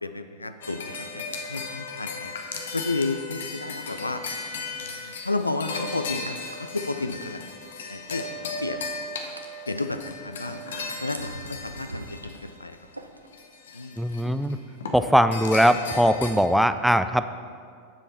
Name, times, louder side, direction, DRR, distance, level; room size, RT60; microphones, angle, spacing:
voice 1, 0.0-2.3 2.7-4.2 4.8-7.4 7.9-8.3 8.6-8.9 9.7-10.6 11.0-12.8 13.7-14.0, left 3 dB, 80° left, 9 dB, 0.4 m, -32 dB
sound 1, 0.6-12.8 13.3-14.5 14.8-16.3, left 3 dB, 65° left, 1.0 m, -36 dB
sound 2, 5.5-8.1 8.3-13.3, right 1 dB, 85° right, 0.5 m, -44 dB
voice 2, 14.0-14.6 14.9-17.3, equal, ahead, 11 dB, 0.3 m, -21 dB
9.7 x 7.3 x 4.1 m, 2.2 s
figure-of-eight pair, 90°, 0 cm